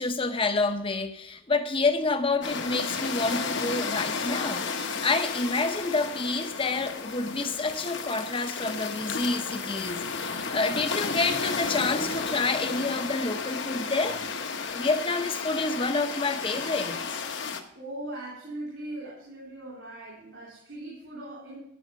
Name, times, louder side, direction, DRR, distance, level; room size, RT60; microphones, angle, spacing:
voice 1, 0.0-14.4 14.7-17.0, left 3 dB, 25° left, 0.8 m, -28 dB
sound 1, 2.4-17.6, left 5 dB, 60° left, 1.0 m, -33 dB
voice 2, 17.7-21.6, right 1 dB, 65° right, 3.5 m, -39 dB
12.5 x 5.6 x 6.9 m
head